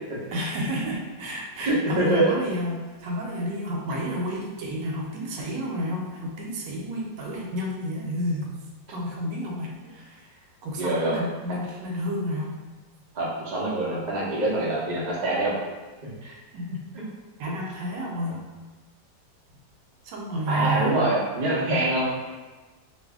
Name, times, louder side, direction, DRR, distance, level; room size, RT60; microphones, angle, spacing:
voice 1, 0.3-8.5 8.9-10.4 10.6-12.6 16.2-16.8 17.4-18.4 20.0-20.9, equal, 80° right, -1 dB, 1.3 m, -31 dB
voice 2, 1.6-2.3 10.8-11.2 13.1-15.5 16.0-16.1 20.5-22.3, right 1 dB, 50° right, -6 dB, 0.5 m, -24 dB
2.9 x 2.5 x 3.5 m, 1.3 s
omnidirectional pair, 2.0 m